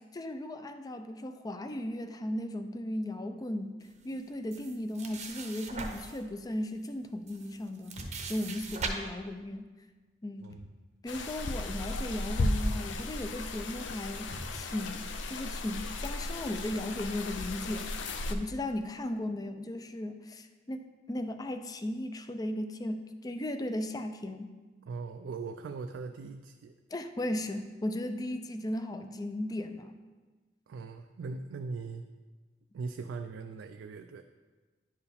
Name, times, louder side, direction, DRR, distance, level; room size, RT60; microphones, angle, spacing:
voice 1, 0.1-3.8 4.0-8.0 8.3-9.7 10.2-10.5 11.0-17.9 18.3-24.5 26.9-30.0, left 1 dB, 20° left, 8 dB, 0.4 m, -36 dB
sound 1, 4.5-6.2 6.9-7.0 7.3-8.9, right 4 dB, 40° right, 0.7 m, -40 dB
sound 2, 7.9-8.5 10.3-10.8 11.1-12.0 12.3-12.7 13.4-14.9, equal, 65° left, 1.4 m, -47 dB
Noche campo, 11.1-18.3, left 2 dB, 85° left, 0.5 m, -35 dB
voice 2, 24.9-26.7 30.7-32.0 32.7-34.2, right 4 dB, 80° right, 6 dB, 0.3 m, -40 dB
10.5 x 4.7 x 3.4 m, 1.3 s
head